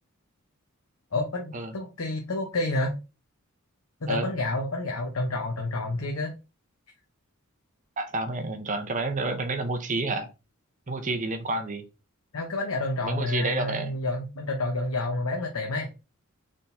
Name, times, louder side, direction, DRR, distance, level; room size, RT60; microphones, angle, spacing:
voice 1, 1.1-3.0 4.0-6.3 12.3-15.9, left 2 dB, 75° left, 0.8 m, -29 dB
voice 2, 8.0-10.3 10.9-11.8 13.0-13.9, right 2 dB, 35° right, 0.7 m, -29 dB
4.4 x 3.7 x 2.6 m
head